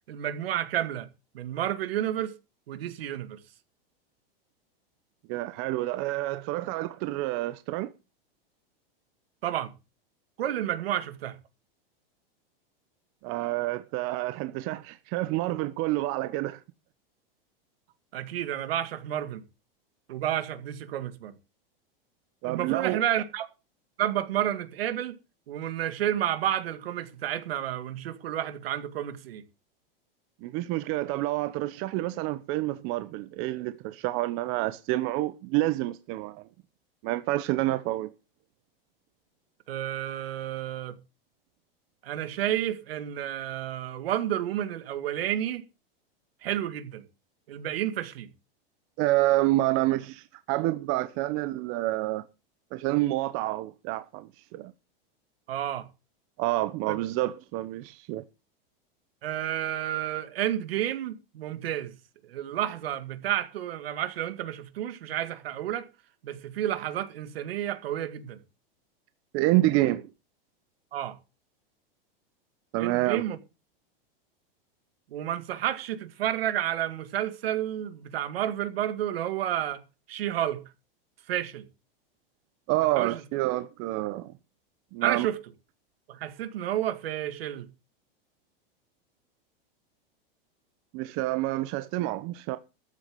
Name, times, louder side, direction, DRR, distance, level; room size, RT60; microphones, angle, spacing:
voice 1, 0.1-1.1 1.3-2.3 2.7-3.4 9.4-9.7 10.4-11.4 18.1-19.4 20.1-21.3 22.5-23.5 24.0-25.2 25.5-29.4 39.7-41.0 42.0-45.6 46.4-47.0 47.5-48.3 55.5-55.9 56.9-57.0 59.2-61.9 62.2-65.9 66.2-68.4 70.9-71.2 72.8-73.4 75.1-79.8 80.1-80.6 81.3-81.7 83.0-83.1 85.0-85.4 86.1-87.7, right 11 dB, 80° right, 2.1 m, -30 dB
voice 2, 5.3-7.9 13.2-16.6 22.4-23.0 30.4-36.4 37.0-38.1 49.0-52.2 52.7-54.7 56.4-58.2 69.3-70.1 72.7-73.2 82.7-84.3 84.9-85.3 90.9-92.6, right 17 dB, 45° right, 1.0 m, -28 dB
14.0 x 7.4 x 6.8 m
supercardioid pair, 135°, 29 cm